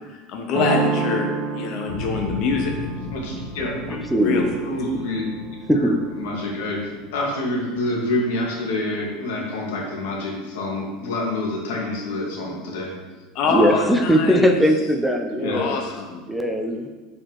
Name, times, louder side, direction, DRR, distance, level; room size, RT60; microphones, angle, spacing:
voice 1, 0.3-1.3 1.6-2.7 4.2-4.5 13.3-14.6 15.5-16.2, left 5 dB, 45° left, 2 dB, 0.7 m, -24 dB
sound 1, 0.5-6.1, right 5 dB, 50° right, 1.2 m, -30 dB
sound 2, 1.9-10.6 11.0-11.5, left 2 dB, 65° left, 1.2 m, -37 dB
voice 2, 3.1-4.0 4.6-5.3 5.7-12.9 13.4-13.8 15.4-15.9, left 1 dB, 90° left, -2 dB, 1.7 m, -27 dB
voice 3, 3.9-4.5 5.7-6.0 13.5-15.8 16.3-16.9, equal, ahead, 3 dB, 0.4 m, -20 dB
7.4 x 4.3 x 3.0 m, 1.3 s
supercardioid pair, 155°, 0 cm